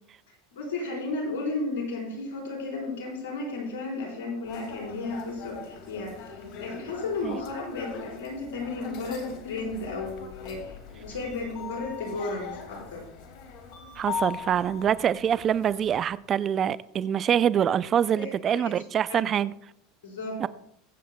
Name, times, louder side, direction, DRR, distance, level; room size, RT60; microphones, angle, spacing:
voice 1, 0.5-6.3 6.6-13.1 18.1-18.6 19.1-19.2 20.0-20.4, left 3 dB, 85° left, 4.4 m, -34 dB
sound 1, 4.4-16.0, left 6 dB, 60° left, 2.1 m, -40 dB
voice 2, 14.0-19.5 20.4-20.5, right 9 dB, 35° right, 0.4 m, -25 dB
22.0 x 7.7 x 2.2 m
hypercardioid pair, 100°, 0 cm